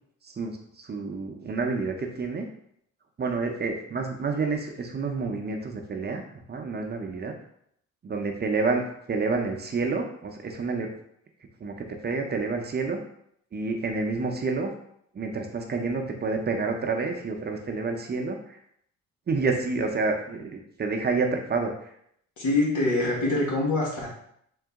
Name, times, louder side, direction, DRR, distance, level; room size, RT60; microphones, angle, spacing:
voice 1, 0.2-2.4 3.2-6.2 6.5-7.3 8.0-8.8 9.1-10.9 11.6-11.7 12.0-13.0 13.5-14.7 15.1-18.6 19.3-21.9, right 4 dB, 35° right, 3 dB, 0.7 m, -29 dB
voice 2, 22.4-24.1, left 2 dB, 75° left, -3 dB, 1.5 m, -24 dB
3.8 x 2.7 x 3.5 m, 0.69 s
cardioid pair, 90°, 30 cm